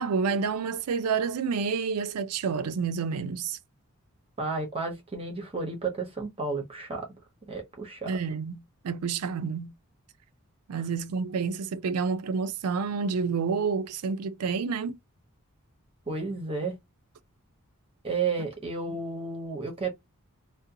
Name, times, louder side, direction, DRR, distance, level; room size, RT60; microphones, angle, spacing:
voice 1, 0.0-3.6 8.1-9.7 10.7-15.0, right 5 dB, 80° right, 0.4 m, -29 dB
voice 2, 4.4-7.1 7.5-8.1 16.1-16.7 18.0-19.9, right 4 dB, 25° right, 0.7 m, -32 dB
2.5 x 2.1 x 2.7 m
head